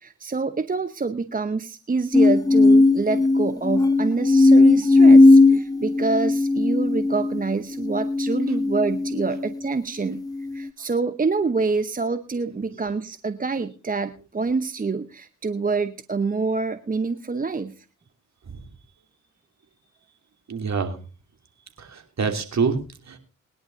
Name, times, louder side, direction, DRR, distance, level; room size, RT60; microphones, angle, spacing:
voice 1, 0.0-10.3 10.5-17.8, right 4 dB, 25° right, 11 dB, 0.9 m, -26 dB
sound 1, 2.1-9.6 10.2-10.7, left 2 dB, 10° left, 0.9 m, -17 dB
voice 2, 20.5-21.0 21.8-23.2, right 5 dB, 45° right, 5 dB, 2.9 m, -27 dB
21.0 x 10.5 x 2.7 m, 0.33 s
hypercardioid pair, 45°, 37 cm